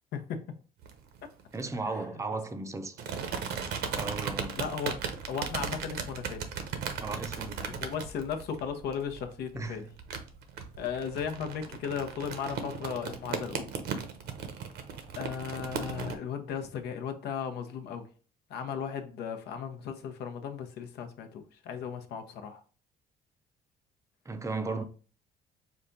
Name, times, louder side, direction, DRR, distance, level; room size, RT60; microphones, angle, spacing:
voice 1, 0.1-0.4 4.6-4.9 5.3-6.5 7.8-9.8 10.8-13.7 15.2-18.1 18.5-22.6, left 7 dB, 75° left, 0.8 m, -36 dB
sound 1, 0.8-1.6 3.0-16.2, right 6 dB, 75° right, 0.8 m, -37 dB
voice 2, 1.5-3.0 4.0-4.6 7.0-7.8 9.6-9.9 24.3-24.8, right 3 dB, 15° right, 0.6 m, -36 dB
5.0 x 2.3 x 3.9 m
cardioid pair, 110°, 17 cm